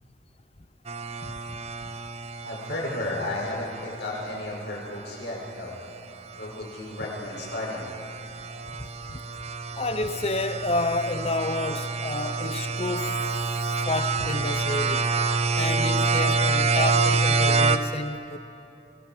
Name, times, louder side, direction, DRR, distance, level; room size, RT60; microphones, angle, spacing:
sound 1, 0.9-5.5 6.3-6.6 7.0-17.8, right 4 dB, 35° right, 0.8 m, -27 dB
voice 1, 2.4-5.8 6.4-7.9, left 1 dB, 70° left, 6.6 m, -33 dB
voice 2, 9.8-13.2 13.9-15.1 15.5-18.4, left 2 dB, 35° left, 0.9 m, -30 dB
25.5 x 18.0 x 7.7 m
head